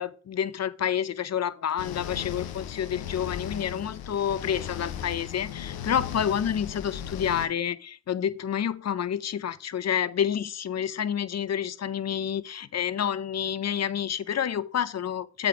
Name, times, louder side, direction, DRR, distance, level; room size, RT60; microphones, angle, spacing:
voice 1, 0.0-15.5, left 9 dB, 45° left, 0.6 m, -29 dB
sound 1, 1.8-7.5, left 9 dB, 85° left, 0.8 m, -37 dB
7.5 x 5.2 x 4.9 m
cardioid pair, 60°, 36 cm